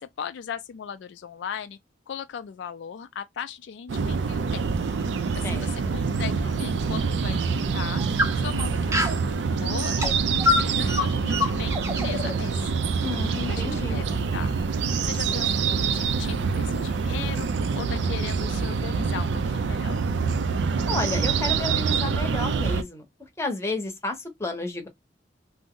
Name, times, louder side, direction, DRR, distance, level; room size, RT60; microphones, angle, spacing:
voice 1, 0.0-1.8 2.1-4.7 5.4-12.7 13.5-20.0, left 7 dB, 70° left, 0.3 m, -38 dB
sound 1, 3.9-22.8, right 5 dB, 70° right, 0.4 m, -26 dB
sound 2, 4.5-6.6 7.0-7.1 7.8-9.3 9.8-14.1, left 3 dB, 15° right, 0.5 m, -29 dB
voice 2, 5.4-5.9 13.0-14.0 20.9-23.0 23.4-24.9, left 2 dB, 15° left, 0.7 m, -31 dB
2.6 x 2.0 x 3.6 m
head